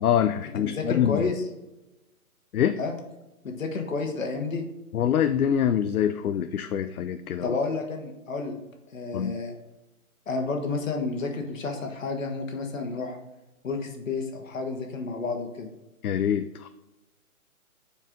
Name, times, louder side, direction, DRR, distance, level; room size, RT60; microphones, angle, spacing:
voice 1, 0.0-1.3 2.5-2.8 4.9-7.6 9.1-9.3 16.0-16.7, left 9 dB, 75° left, 10 dB, 0.6 m, -25 dB
voice 2, 0.6-1.4 2.8-2.9 3.4-4.6 7.4-8.6 8.9-9.6 10.3-13.2 13.6-15.7, left 4 dB, 60° left, 3 dB, 1.6 m, -30 dB
7.6 x 4.8 x 3.7 m, 1.0 s
hypercardioid pair, 170°, 44 cm